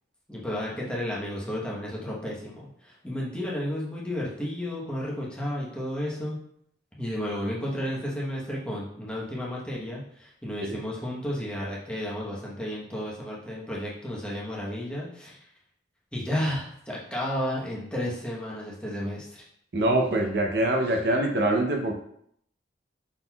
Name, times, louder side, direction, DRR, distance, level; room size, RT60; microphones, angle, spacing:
voice 1, 0.3-6.4 7.0-15.4 16.1-19.4, left 1 dB, 5° left, -6 dB, 1.0 m, -32 dB
voice 2, 19.7-21.9, right 1 dB, 60° right, 2 dB, 0.7 m, -24 dB
5.8 x 3.9 x 2.3 m, 0.69 s
head